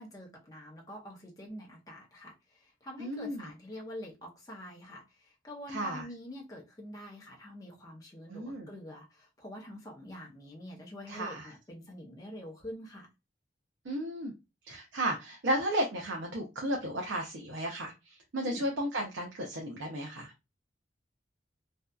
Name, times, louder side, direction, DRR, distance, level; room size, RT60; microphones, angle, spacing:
voice 1, 0.0-13.1 18.4-18.7, left 1 dB, 20° left, -2 dB, 0.5 m, -46 dB
voice 2, 3.0-3.5 5.7-6.1 8.3-8.7 11.1-11.5 13.8-14.3 14.7-20.3, right 1 dB, 80° right, 0 dB, 0.5 m, -34 dB
2.6 x 2.2 x 2.2 m, 0.25 s
head